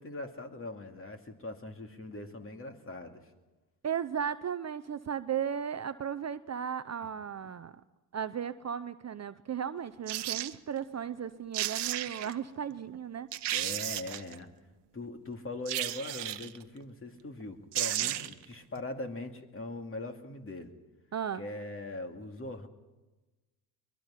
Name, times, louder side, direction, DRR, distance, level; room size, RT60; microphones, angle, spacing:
voice 1, 0.0-3.3 7.4-7.5 13.5-14.5 14.9-20.7 21.4-22.7, left 2 dB, 25° left, 5 dB, 2.5 m, -41 dB
voice 2, 3.8-7.8 8.1-13.3 21.1-21.4, right 8 dB, 35° right, 12 dB, 0.7 m, -35 dB
sound 1, 10.1-10.5 11.3-11.4 11.5-12.3 12.9-13.0 13.3-14.3 15.7-16.6 17.4-17.5 17.7-18.4 18.8-18.9, right 13 dB, 60° right, 1.1 m, -33 dB
23.0 x 22.0 x 5.8 m, 1.1 s
supercardioid pair, 80°, 47 cm